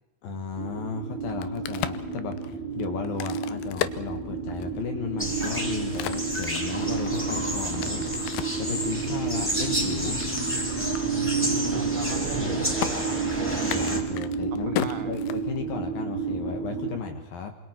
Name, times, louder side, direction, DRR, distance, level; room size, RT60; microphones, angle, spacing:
voice 1, 0.2-2.4 2.8-8.0 8.6-10.2 13.7-17.5, left 6 dB, 65° left, 6 dB, 2.6 m, -34 dB
sound 1, 0.5-17.0, right 5 dB, 25° left, 3.1 m, -31 dB
Crack, 1.2-4.8 5.3-8.7 9.2-10.6 11.0-11.1 11.3-11.7 11.9-12.5 12.8-12.9 13.6-15.8, left 12 dB, 90° left, 2.2 m, -35 dB
sound 2, 5.2-14.0, equal, 5° left, 3.7 m, -31 dB
voice 2, 11.3-13.8 14.7-15.2, right 10 dB, 80° right, 9 dB, 2.2 m, -40 dB
27.5 x 27.0 x 4.5 m, 1.1 s
omnidirectional pair, 5.7 m